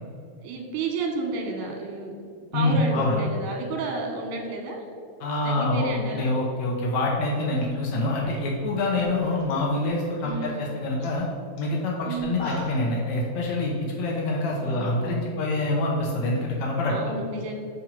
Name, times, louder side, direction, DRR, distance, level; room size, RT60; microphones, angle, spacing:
voice 1, 0.4-2.1 2.5-4.8 5.4-6.2 10.2-10.6 12.1-12.4 14.6-15.4 16.9-17.5, right 3 dB, 85° right, 2 dB, 3.3 m, -31 dB
voice 2, 2.5-3.2 5.2-11.2 11.6-16.9, left 2 dB, 85° left, -2 dB, 1.6 m, -26 dB
sound 1, 7.5-9.5 9.8-10.3 10.7-10.8 11.0-11.2 11.6-11.7 12.1-12.9, left 1 dB, 55° left, 1.8 m, -40 dB
6.2 x 5.9 x 5.4 m, 2.3 s
omnidirectional pair, 4.6 m